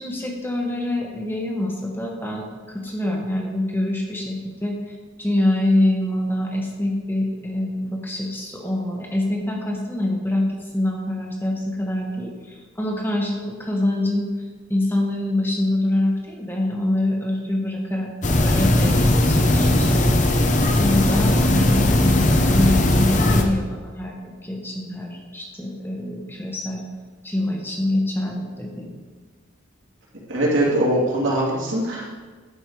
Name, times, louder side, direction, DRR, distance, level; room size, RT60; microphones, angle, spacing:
voice 1, 0.0-14.3 14.7-18.1 18.4-20.2 20.8-26.8 27.2-28.9, left 1 dB, 10° left, 0 dB, 1.2 m, -25 dB
sound 1, 18.2-23.4, left 1 dB, 35° left, 0.8 m, -18 dB
voice 2, 30.3-32.1, right 1 dB, 75° right, -6 dB, 2.8 m, -21 dB
11.0 x 5.5 x 4.8 m, 1.4 s
head